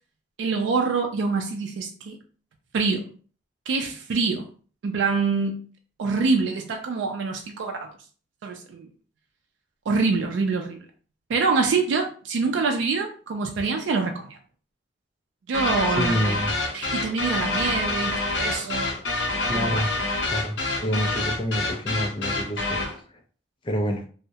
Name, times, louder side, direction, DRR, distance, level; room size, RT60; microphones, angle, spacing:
voice 1, 0.4-2.2 2.7-3.1 3.7-4.5 4.8-5.6 6.0-7.9 8.4-8.9 9.9-10.8 11.3-14.4 15.5-16.4 16.7-18.9 19.6-19.8, right 4 dB, 75° right, 3 dB, 0.3 m, -25 dB
sound 1, 15.5-23.0, left 2 dB, 70° left, 0.6 m, -27 dB
voice 2, 15.9-16.5 19.5-19.9 20.3-22.8 23.1-23.2 23.6-24.0, equal, 25° left, 3 dB, 0.4 m, -27 dB
2.2 x 2.0 x 2.7 m, 0.41 s
head